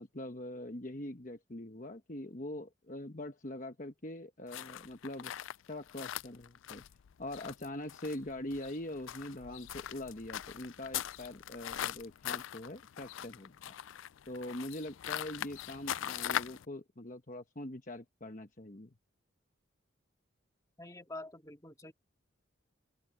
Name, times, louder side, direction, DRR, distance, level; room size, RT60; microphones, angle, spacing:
voice 1, 0.0-5.3 5.7-6.8 7.2-13.8 14.3-18.9, left 1 dB, 40° left, 1.1 m, -43 dB
sound 1, 4.5-16.7, left 10 dB, 75° left, 0.4 m, -41 dB
voice 2, 20.8-21.9, left 2 dB, 15° left, 2.1 m, -46 dB
open air
head